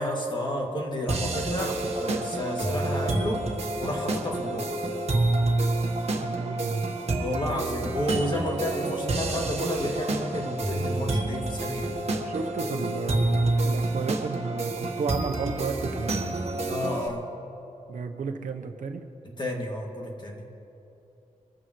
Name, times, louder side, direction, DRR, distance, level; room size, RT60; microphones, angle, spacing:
voice 1, 0.0-3.4 3.8-4.7 7.2-12.0 16.7-17.3 19.2-20.4, left 1 dB, 35° left, 0 dB, 2.3 m, -31 dB
sound 1, 1.1-17.1, right 2 dB, 50° right, 1.6 m, -28 dB
voice 2, 6.2-6.9 12.3-16.3 17.9-19.1, right 4 dB, 70° right, 5 dB, 1.0 m, -32 dB
25.0 x 14.5 x 3.2 m, 2.9 s
wide cardioid pair, 120°, 13 cm